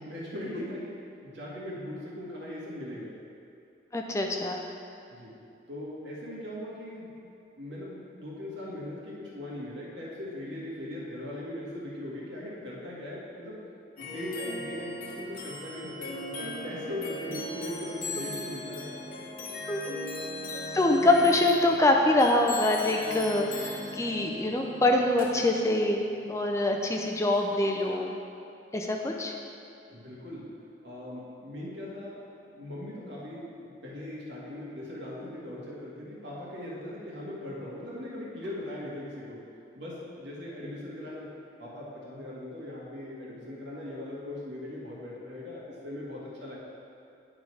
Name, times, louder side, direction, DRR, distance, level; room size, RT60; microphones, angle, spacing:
voice 1, 0.0-3.2 5.1-5.4 5.7-7.2 7.6-13.7 14.0-18.9 19.2-19.3 21.0-21.2 29.9-30.5 30.8-39.4 39.7-41.3 41.6-46.6, left 1 dB, 75° right, -6 dB, 1.8 m, -39 dB
voice 2, 3.9-4.6 19.7-19.8 20.7-26.0 26.3-28.2 28.7-29.3, left 2 dB, 15° left, 1 dB, 0.4 m, -24 dB
sound 1, 14.0-28.0, left 2 dB, 50° left, 0.9 m, -39 dB
10.0 x 3.8 x 4.7 m, 2.6 s
head